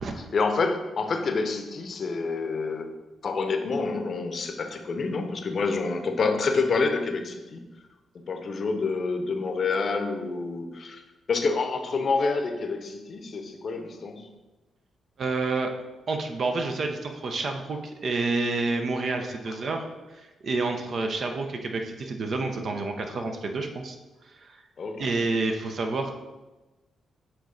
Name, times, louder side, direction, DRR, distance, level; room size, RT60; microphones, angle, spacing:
voice 1, 0.2-2.9 3.2-7.6 8.1-11.0 11.3-14.3 24.8-25.1, left 4 dB, 55° left, 6 dB, 0.7 m, -28 dB
voice 2, 15.2-15.7 16.1-19.9 20.1-24.0 24.2-24.6 25.0-26.2, right 3 dB, 55° right, 4 dB, 0.7 m, -29 dB
7.9 x 3.1 x 3.9 m, 1.1 s
hypercardioid pair, 45°, 0 cm